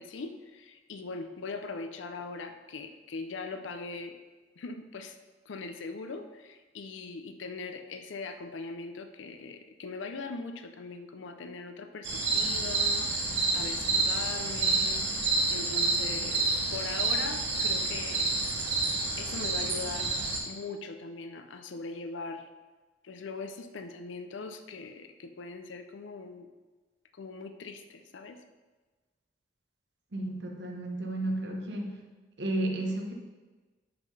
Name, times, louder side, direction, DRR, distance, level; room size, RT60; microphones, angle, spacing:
voice 1, 0.0-4.2 4.6-5.2 5.5-18.3 19.2-20.1 20.4-22.5 23.0-26.5 27.1-28.4, left 4 dB, 85° left, 7 dB, 0.5 m, -41 dB
sound 1, 12.0-20.4, right 3 dB, 80° right, 1.2 m, -29 dB
voice 2, 30.1-32.0 32.4-33.1, right 1 dB, 65° right, 2 dB, 0.9 m, -32 dB
5.8 x 3.8 x 5.2 m, 1.3 s
head